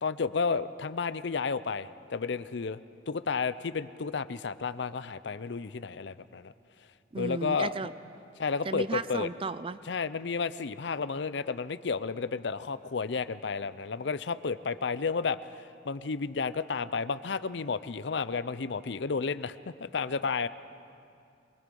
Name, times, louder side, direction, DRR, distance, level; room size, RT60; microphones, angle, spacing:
voice 1, 0.0-2.8 3.1-6.5 7.1-7.7 8.4-9.3 9.9-15.4 15.8-20.5, left 5 dB, 65° left, 15 dB, 0.6 m, -32 dB
voice 2, 7.1-7.9 8.6-9.8, right 3 dB, 30° right, 14 dB, 0.5 m, -34 dB
23.5 x 22.0 x 5.4 m, 2.5 s
head